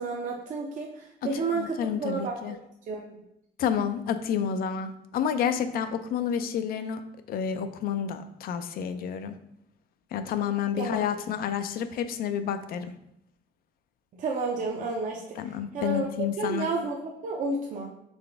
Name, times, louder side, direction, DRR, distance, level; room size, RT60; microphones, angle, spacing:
voice 1, 0.0-2.5 2.9-3.2 10.7-11.1 14.1-17.9, right 3 dB, 50° right, 0 dB, 0.6 m, -31 dB
voice 2, 1.5-2.6 3.6-7.0 7.3-9.4 10.1-12.9 15.4-16.7, left 8 dB, 60° left, 10 dB, 0.4 m, -29 dB
4.0 x 3.3 x 3.4 m, 0.78 s
cardioid pair, 110°, 17 cm